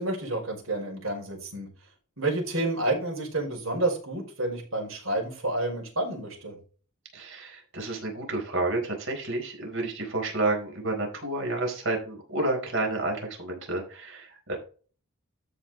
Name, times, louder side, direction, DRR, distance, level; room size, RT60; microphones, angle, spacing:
voice 1, 0.0-1.7 2.2-6.6, right 2 dB, 80° right, -1 dB, 5.5 m, -29 dB
voice 2, 7.1-14.6, right 2 dB, 65° right, 1 dB, 4.4 m, -30 dB
13.0 x 5.4 x 3.9 m, 0.39 s
head